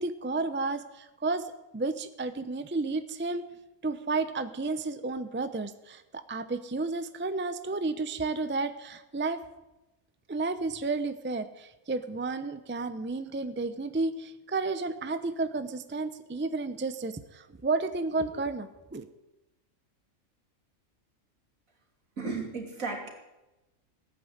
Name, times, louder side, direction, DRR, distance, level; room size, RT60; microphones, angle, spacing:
voice 1, 0.0-3.5 3.8-9.4 10.3-19.1, right 3 dB, 10° right, 11 dB, 0.6 m, -32 dB
voice 2, 22.2-23.1, right 4 dB, 75° right, 2 dB, 3.4 m, -34 dB
17.5 x 9.6 x 8.1 m, 1.0 s
omnidirectional pair, 1.4 m